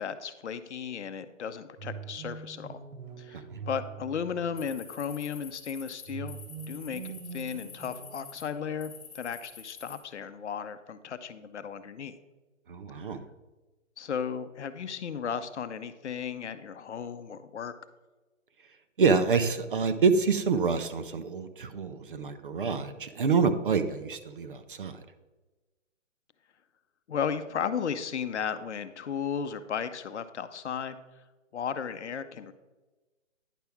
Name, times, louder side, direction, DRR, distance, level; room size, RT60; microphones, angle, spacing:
voice 1, 0.0-2.8 3.2-6.4 6.7-12.1 14.0-17.7 27.1-31.0 31.5-32.5, left 7 dB, 65° left, 11 dB, 0.7 m, -35 dB
sound 1, 1.8-4.9 6.1-9.0, right 6 dB, 85° right, 1.1 m, -44 dB
sound 2, 4.6-8.4 8.8-10.0, left 6 dB, 25° left, 1.8 m, -47 dB
voice 2, 12.7-13.2 19.0-25.0, right 5 dB, 45° right, 10 dB, 0.6 m, -27 dB
10.0 x 5.8 x 3.5 m, 1.2 s
hypercardioid pair, 165°, 37 cm